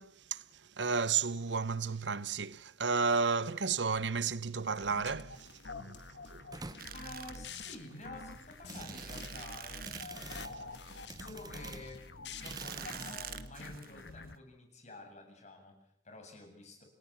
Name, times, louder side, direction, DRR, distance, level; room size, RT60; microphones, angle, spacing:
voice 1, 0.0-5.6 5.8-6.0 6.3-6.5, right 5 dB, 80° right, 1.0 m, -33 dB
sound 1, 4.7-14.4, left 3 dB, 70° left, 1.7 m, -47 dB
sound 2, 6.5-13.2, right 3 dB, 20° right, 0.9 m, -48 dB
sound 3, 6.8-14.3, right 10 dB, 55° right, 1.5 m, -48 dB
voice 2, 6.9-10.6 11.2-16.8, left 2 dB, 40° left, 7.7 m, -50 dB
30.0 x 18.5 x 7.6 m
head